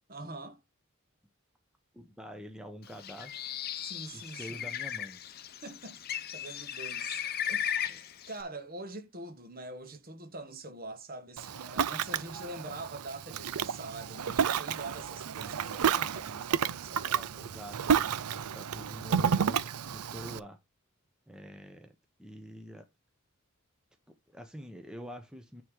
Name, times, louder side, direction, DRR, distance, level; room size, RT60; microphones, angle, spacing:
voice 1, 0.1-0.6 3.8-4.7 5.6-6.0 6.3-8.0 8.3-17.2, right 2 dB, 40° right, 1.2 m, -44 dB
voice 2, 1.9-3.4 4.1-5.2 7.9-8.0 17.0-20.6 21.3-22.9 24.3-25.6, equal, 5° right, 0.8 m, -46 dB
Bird, 2.9-8.4, left 9 dB, 45° left, 0.7 m, -36 dB
Ocean, 11.4-20.4, right 7 dB, 85° right, 0.5 m, -31 dB
9.4 x 3.7 x 4.7 m
head